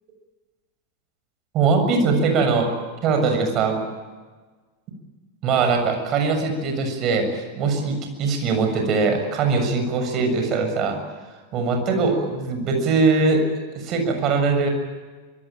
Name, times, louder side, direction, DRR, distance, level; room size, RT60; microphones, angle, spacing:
voice 1, 1.5-2.7 3.0-3.8 5.4-11.0 11.5-13.4 13.7-14.7, right 4 dB, 35° right, 5 dB, 6.9 m, -21 dB
25.0 x 22.5 x 9.0 m, 1.3 s
figure-of-eight pair, 90°, 0 cm